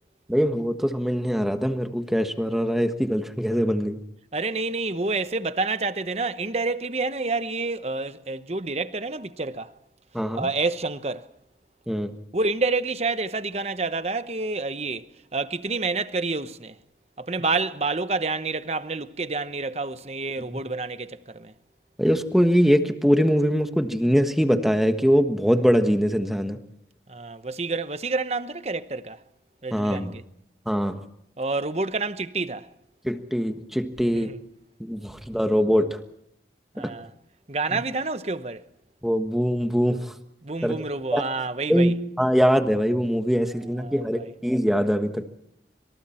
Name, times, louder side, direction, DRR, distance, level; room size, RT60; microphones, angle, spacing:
voice 1, 0.3-4.0 10.1-10.5 11.9-12.1 20.5-20.6 22.0-26.6 29.7-30.1 30.7-31.0 33.0-34.3 34.8-36.0 36.8-36.9 39.0-40.1 40.6-40.8 41.1-41.2 41.7-45.3, equal, ahead, 1.4 m, -22 dB
voice 2, 4.3-9.7 10.3-11.3 12.3-16.8 17.2-21.5 27.1-29.2 29.6-30.2 31.4-32.7 34.0-34.4 36.7-37.1 37.5-38.6 40.4-41.9 43.7-44.3, right 3 dB, 35° right, 1.0 m, -28 dB
27.0 x 26.0 x 4.4 m
head